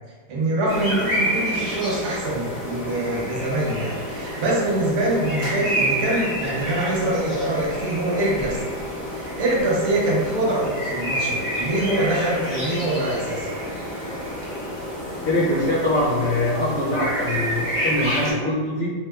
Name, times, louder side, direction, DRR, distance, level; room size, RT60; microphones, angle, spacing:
voice 1, 0.3-8.7 9.1-13.5, right 1 dB, 70° right, -4 dB, 1.1 m, -24 dB
sound 1, 0.7-18.3, equal, 15° left, 1.2 m, -29 dB
voice 2, 15.3-18.9, left 1 dB, 60° left, -10 dB, 0.7 m, -23 dB
3.2 x 2.7 x 2.2 m, 1.5 s
omnidirectional pair, 1.8 m